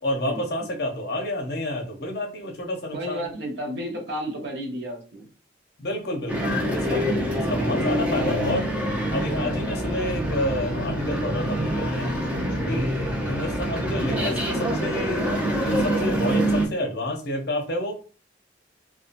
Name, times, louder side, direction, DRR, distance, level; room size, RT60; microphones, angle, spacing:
voice 1, 0.0-3.3 5.8-8.7 9.1-12.1 12.7-15.3 15.6-17.9, left 1 dB, 60° left, 2 dB, 0.7 m, -29 dB
voice 2, 2.9-5.3 12.0-12.8, equal, 65° right, 1 dB, 0.8 m, -33 dB
sound 1, 6.3-16.7, equal, 10° right, 0.6 m, -25 dB
2.7 x 2.3 x 2.5 m, 0.35 s
head